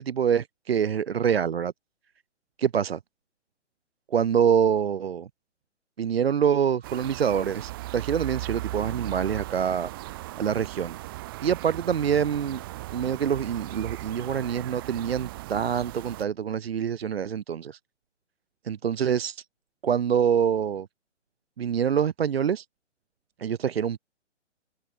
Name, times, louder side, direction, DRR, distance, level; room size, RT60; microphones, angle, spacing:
voice 1, 0.0-1.7 2.6-3.0 4.1-5.3 6.0-9.9 10.4-11.0 11.4-12.6 12.9-17.8 18.6-19.4 19.8-20.9 21.6-22.6 23.4-24.0, right 8 dB, 55° right, 0.7 m, -25 dB
sound 1, 6.8-16.2, right 18 dB, 20° right, 0.7 m, -37 dB
open air
figure-of-eight pair, 130°, 36 cm